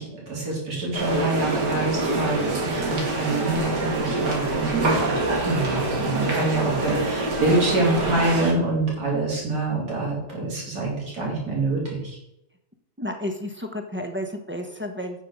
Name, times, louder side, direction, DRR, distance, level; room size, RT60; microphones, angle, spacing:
voice 1, 0.0-12.2, right 2 dB, 70° right, -4 dB, 3.9 m, -26 dB
sound 1, 0.9-8.5, right 2 dB, 90° right, 2.6 m, -25 dB
voice 2, 13.0-15.2, left 1 dB, 10° right, 2 dB, 1.0 m, -31 dB
9.0 x 6.1 x 6.5 m, 0.86 s
omnidirectional pair, 1.7 m